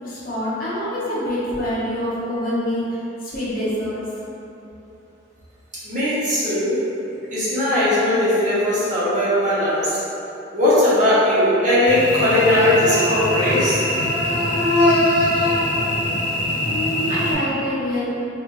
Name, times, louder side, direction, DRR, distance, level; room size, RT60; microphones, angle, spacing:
voice 1, 0.0-4.0 16.6-18.0, equal, 50° left, -9 dB, 0.8 m, -25 dB
voice 2, 5.8-6.8 7.3-10.0 10.5-13.8, left 1 dB, 40° right, -11 dB, 0.9 m, -19 dB
Cricket / Buzz, 11.9-17.3, left 1 dB, 90° left, 0.6 m, -21 dB
3.1 x 2.5 x 3.0 m, 3.0 s
head